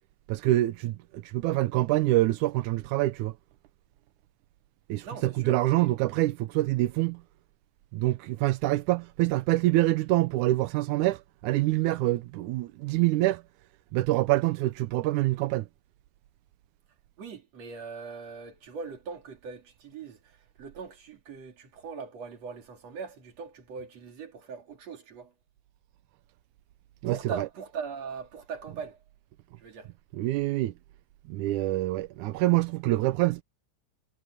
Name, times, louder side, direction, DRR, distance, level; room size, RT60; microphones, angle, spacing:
voice 1, 0.3-3.3 4.9-7.2 7.9-13.4 13.9-15.7 27.0-27.5 30.1-30.7 31.3-33.4, right 17 dB, 90° right, 2.2 m, -26 dB
voice 2, 5.0-5.9 17.2-25.3 27.1-29.0 29.6-29.9, right 5 dB, 60° right, 4.0 m, -41 dB
omnidirectional pair, 3.4 m